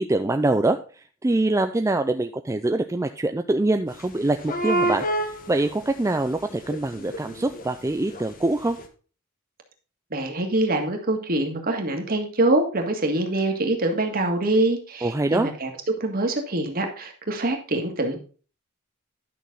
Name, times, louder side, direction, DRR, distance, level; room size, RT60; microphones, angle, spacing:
voice 1, 0.0-8.8 15.0-15.5, right 2 dB, 15° right, 7 dB, 0.4 m, -24 dB
sound 1, 4.0-4.1 4.3-6.2 6.5-8.4 8.8-8.9, right 1 dB, 40° left, 1.3 m, -28 dB
voice 2, 10.1-15.7 16.0-18.2, right 2 dB, 45° right, 4 dB, 1.8 m, -24 dB
11.0 x 6.2 x 3.9 m, 0.38 s
head